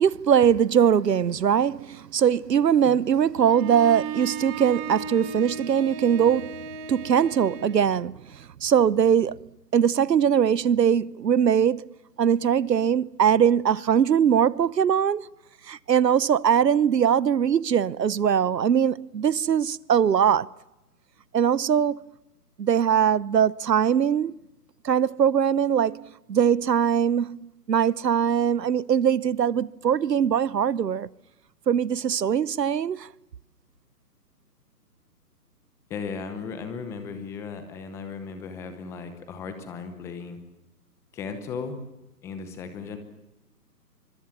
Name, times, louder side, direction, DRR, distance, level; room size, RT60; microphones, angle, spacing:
voice 1, 0.0-6.6 6.9-11.8 12.2-15.3 15.7-20.5 21.3-22.1 22.6-24.3 24.8-31.1 31.7-33.1, right 8 dB, 80° right, 0.9 m, -21 dB
Bowed string instrument, 3.5-7.9, right 6 dB, 20° right, 2.0 m, -36 dB
voice 2, 35.9-40.4 41.1-41.8 42.2-43.0, left 5 dB, 5° left, 0.8 m, -36 dB
25.0 x 23.5 x 7.2 m
hypercardioid pair, 150°, 48 cm